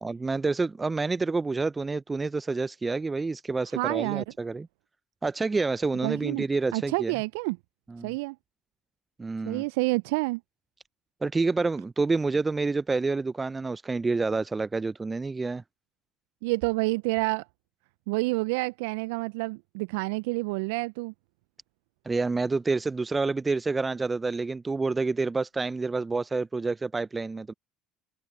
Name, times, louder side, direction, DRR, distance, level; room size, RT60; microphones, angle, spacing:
voice 1, 0.0-4.7 5.2-7.2 7.9-8.2 9.2-9.6 11.2-15.6 22.1-27.5, right 3 dB, 20° right, 0.7 m, -28 dB
voice 2, 3.7-4.2 6.0-6.4 6.7-7.6 8.0-8.4 9.5-10.4 16.4-17.4 18.1-21.1, right 25 dB, 70° right, 0.6 m, -28 dB
hypercardioid pair, 60°, 0 cm